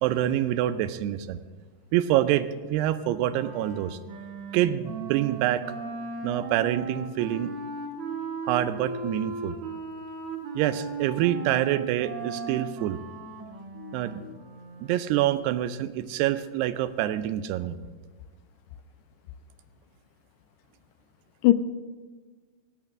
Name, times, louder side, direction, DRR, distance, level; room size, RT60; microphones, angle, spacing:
voice 1, 0.0-1.4 1.9-4.0 4.5-5.6 6.2-7.5 8.4-9.6 10.6-13.0 13.9-14.2 14.8-17.8, right 12 dB, 85° right, 12 dB, 2.6 m, -26 dB
Wind instrument woodwind instrument, 3.3-15.3, right 3 dB, 55° right, 2.6 m, -37 dB
voice 2, 13.8-14.3 21.4-21.5, left 16 dB, 85° left, 12 dB, 2.5 m, -23 dB
18.0 x 6.6 x 6.0 m, 1.4 s
omnidirectional pair, 4.7 m